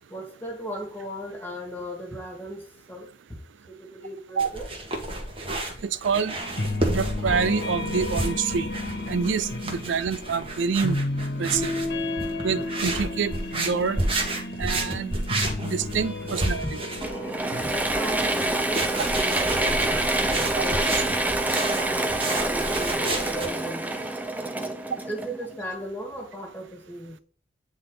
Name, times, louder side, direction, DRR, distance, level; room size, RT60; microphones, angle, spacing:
voice 1, 0.1-3.1 3.7-4.7 16.6-16.7 17.6-20.9 21.5-24.1 24.5-24.7 25.1-27.2, equal, 10° left, 1.8 m, -36 dB
sound 1, 4.4-23.5, right 1 dB, 30° right, 1.4 m, -31 dB
voice 2, 5.8-6.3 6.9-8.7 9.1-11.0 11.4-11.7 12.4-14.0 14.6-15.1 15.6-16.6 20.6-20.7, right 6 dB, 80° right, 0.4 m, -26 dB
sound 2, 6.4-17.7, left 2 dB, 65° left, 1.4 m, -32 dB
Mechanisms / Drill, 17.0-25.6, right 2 dB, 10° right, 0.6 m, -26 dB
8.9 x 4.0 x 3.8 m
head